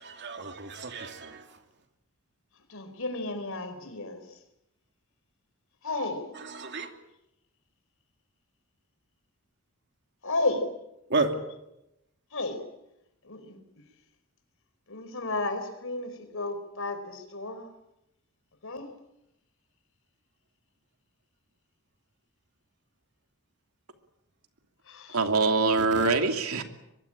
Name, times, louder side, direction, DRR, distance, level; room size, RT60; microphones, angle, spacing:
voice 1, 0.0-1.6 6.3-6.9 11.1-11.3 25.8-26.1, right 3 dB, 50° right, 6 dB, 2.9 m, -32 dB
voice 2, 2.7-4.4 5.8-6.2 10.2-10.6 12.3-12.6 13.2-13.6 14.9-17.7 18.6-18.9 24.9-25.2, left 2 dB, 65° left, 9 dB, 4.5 m, -32 dB
voice 3, 25.1-26.6, right 3 dB, 75° right, 6 dB, 2.8 m, -24 dB
23.5 x 23.5 x 8.8 m, 0.88 s
head